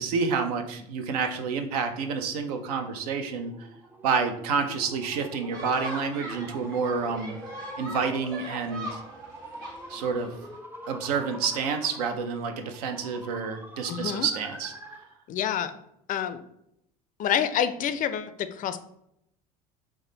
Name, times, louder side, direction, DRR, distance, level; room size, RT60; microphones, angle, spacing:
voice 1, 0.0-3.5 4.0-7.4 7.8-9.0 9.9-10.3 10.9-14.7, right 5 dB, 85° right, 6 dB, 0.5 m, -29 dB
sound 1, 2.9-15.2, right 1 dB, 10° right, 0.5 m, -45 dB
sound 2, 5.5-10.6, right 1 dB, 70° right, 1.2 m, -41 dB
voice 2, 13.9-14.3 15.3-15.7 16.1-16.4 17.2-18.8, left 9 dB, 45° left, 11 dB, 0.4 m, -27 dB
3.5 x 2.1 x 3.8 m, 0.76 s
hypercardioid pair, 75°, 19 cm